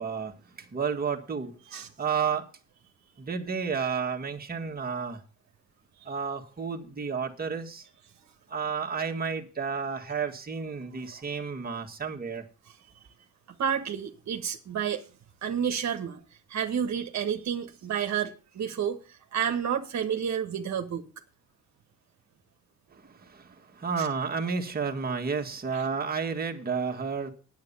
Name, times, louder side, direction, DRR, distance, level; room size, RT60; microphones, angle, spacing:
voice 1, 0.0-2.4 3.2-5.2 6.1-7.9 8.5-12.5 22.9-27.3, right 5 dB, 30° right, 1.9 m, -31 dB
voice 2, 13.6-15.0 15.4-16.2 16.5-21.0 24.0-24.1 25.7-25.8, right 8 dB, 65° right, 1.5 m, -30 dB
9.5 x 8.6 x 6.9 m
cardioid pair, 90°, 30 cm